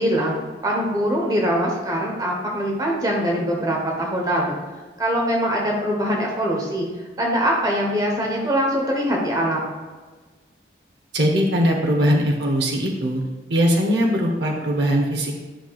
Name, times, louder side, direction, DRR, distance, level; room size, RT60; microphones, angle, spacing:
voice 1, 0.0-4.6 5.0-6.9 7.2-9.7, equal, 20° right, -1 dB, 1.0 m, -23 dB
voice 2, 11.1-13.2 13.5-15.4, equal, 70° right, 0 dB, 0.9 m, -20 dB
10.0 x 5.7 x 2.4 m, 1.3 s
head